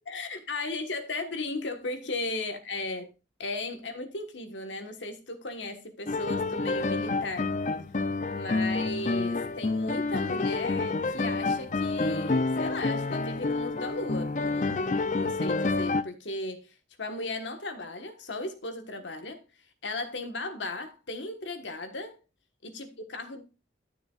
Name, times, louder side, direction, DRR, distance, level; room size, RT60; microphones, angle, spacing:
voice 1, 0.1-3.1 3.4-7.6 8.3-19.4 19.8-22.2 22.6-23.4, left 2 dB, 80° left, 1.4 m, -36 dB
sound 1, 6.1-16.0, left 3 dB, 40° left, 0.4 m, -28 dB
12.5 x 6.8 x 2.4 m
head